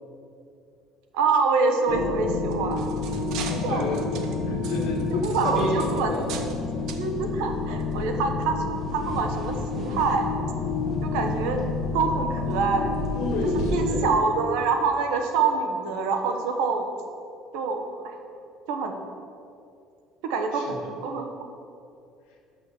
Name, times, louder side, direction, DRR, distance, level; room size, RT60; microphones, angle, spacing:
voice 1, 1.1-2.9 3.6-3.9 5.1-6.1 7.0-10.3 11.0-11.6 11.9-12.9 13.7-16.9 17.5-18.2 18.7-19.0 20.2-21.3, right 4 dB, 90° right, 5 dB, 1.0 m, -26 dB
sound 1, 1.9-14.1, left 4 dB, 55° left, 1.0 m, -29 dB
sound 2, 2.3-6.6 6.9-7.1 7.8-7.9 8.4-8.5, right 7 dB, 65° right, 0.7 m, -40 dB
voice 2, 3.3-4.0 4.4-6.7 13.1-14.3 20.5-20.9, left 2 dB, 80° left, 0 dB, 1.6 m, -31 dB
sound 3, 4.1-13.7, right 1 dB, 30° right, 1.5 m, -39 dB
6.2 x 6.2 x 7.0 m, 2.5 s
cardioid pair, 140°, 0 cm